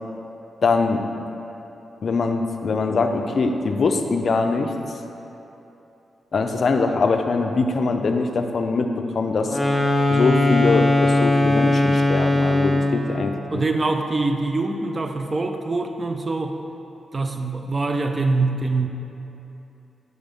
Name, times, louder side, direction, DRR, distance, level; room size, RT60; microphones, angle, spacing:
voice 1, 0.6-1.0 2.0-4.7 6.3-9.6 10.1-13.6, left 4 dB, 55° left, 5 dB, 0.4 m, -22 dB
sound 1, 9.4-13.1, left 1 dB, ahead, 0.8 m, -19 dB
voice 2, 13.5-16.6 17.1-18.9, right 3 dB, 30° right, 5 dB, 0.4 m, -24 dB
6.2 x 3.4 x 5.3 m, 3.0 s
wide cardioid pair, 115°, 0 cm